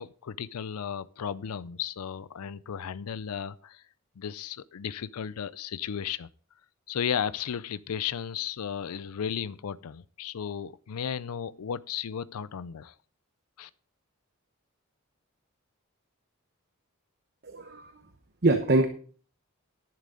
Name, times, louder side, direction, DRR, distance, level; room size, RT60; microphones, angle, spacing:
voice 1, 0.0-3.8 4.2-6.3 6.9-12.9 13.6-13.7, left 8 dB, 90° left, 0.5 m, -34 dB
voice 2, 17.4-17.9 18.4-18.9, right 2 dB, 45° right, 1.0 m, -23 dB
11.0 x 11.0 x 3.9 m
head